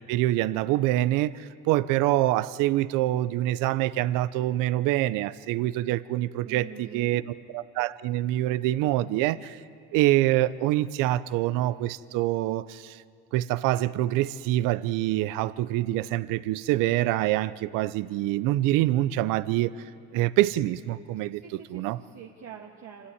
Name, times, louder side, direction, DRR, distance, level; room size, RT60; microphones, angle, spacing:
voice 1, 0.0-7.2 7.5-9.6 9.9-13.0 13.3-19.7 20.1-21.4 21.7-22.0, right 15 dB, 75° right, 16 dB, 0.7 m, -25 dB
voice 2, 6.4-7.4 21.3-23.1, right 7 dB, 55° right, -2 dB, 1.7 m, -45 dB
25.5 x 13.0 x 9.8 m, 2.3 s
supercardioid pair, 100°, 32 cm